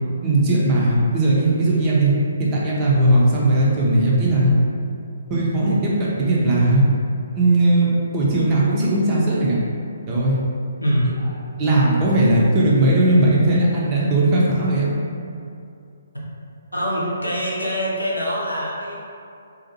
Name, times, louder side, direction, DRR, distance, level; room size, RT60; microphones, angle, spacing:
voice 1, 0.2-2.1 2.4-4.5 5.3-6.8 7.3-9.6 10.1-10.4 11.6-14.9, right 1 dB, 25° right, -6 dB, 0.5 m, -18 dB
voice 2, 10.8-11.1 16.7-18.9, equal, 85° left, -6 dB, 0.7 m, -23 dB
2.6 x 2.4 x 2.7 m, 2.4 s
figure-of-eight pair, 135°, 0 cm